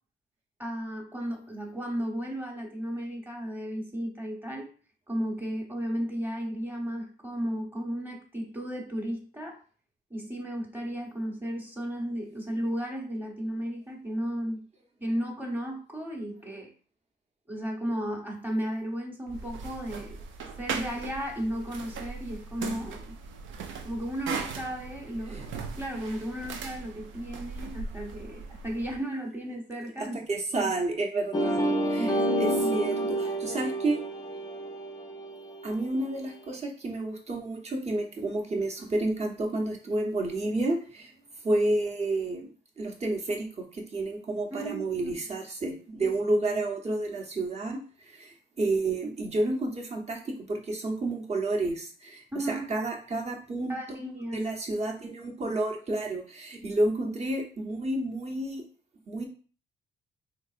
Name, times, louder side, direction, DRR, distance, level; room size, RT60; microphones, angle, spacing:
voice 1, 0.6-4.7 5.1-9.6 10.1-14.6 15.0-16.7 17.5-20.2 20.6-23.1 23.8-25.5 25.8-30.2 30.5-30.7 32.0-32.7 33.0-33.6 44.5-45.1 46.0-46.1 52.3-52.7 53.7-54.4 56.6-56.7, equal, 10° right, 0 dB, 1.0 m, -34 dB
sound 1, 19.3-29.0, right 5 dB, 75° right, 0.5 m, -39 dB
voice 2, 30.0-31.6 31.9-34.0 35.6-41.1 41.4-42.5 42.8-53.8 54.3-58.6 59.1-59.3, right 2 dB, 35° right, 1 dB, 0.9 m, -30 dB
sound 2, 31.3-36.0, right 1 dB, 20° left, 0.5 m, -29 dB
3.3 x 2.9 x 2.5 m, 0.40 s
cardioid pair, 90°, 20 cm